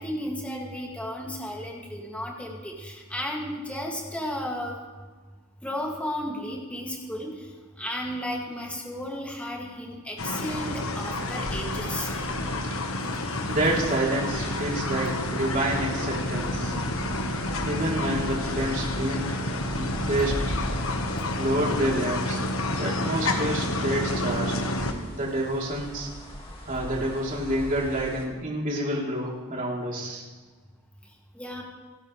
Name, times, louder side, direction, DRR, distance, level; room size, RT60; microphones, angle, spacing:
voice 1, 0.0-4.8 5.6-7.5 7.8-12.1 31.3-31.6, equal, 5° left, -2 dB, 2.4 m, -33 dB
sound 1, 10.2-24.9, left 1 dB, 70° left, 1.4 m, -29 dB
sound 2, 11.4-28.2, equal, 25° left, 2.1 m, -40 dB
voice 2, 13.5-16.8 17.6-19.4 19.7-20.4 21.4-22.4 22.7-24.6 25.1-26.1 26.7-30.2, right 1 dB, 40° right, -3 dB, 3.5 m, -28 dB
28.5 x 11.0 x 3.4 m, 1.4 s
head